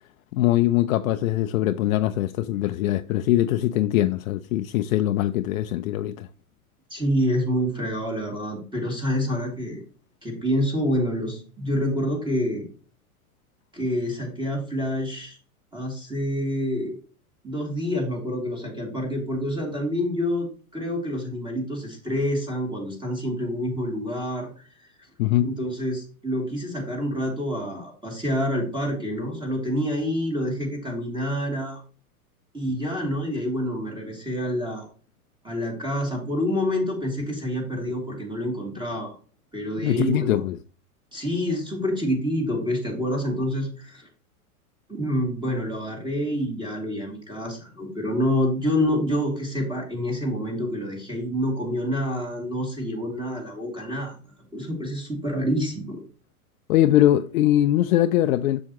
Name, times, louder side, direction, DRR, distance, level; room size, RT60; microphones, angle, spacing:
voice 1, 0.3-6.3 25.2-25.5 39.8-40.6 56.7-58.6, left 13 dB, 65° left, 0.6 m, -22 dB
voice 2, 6.9-9.8 10.2-12.6 13.7-15.4 15.7-16.9 17.4-24.5 25.4-31.8 32.5-34.9 35.4-39.2 39.5-40.4 41.1-44.1 44.9-54.2 54.5-56.0, equal, 10° right, 2.7 m, -27 dB
7.4 x 6.4 x 3.0 m
hypercardioid pair, 110°, 44 cm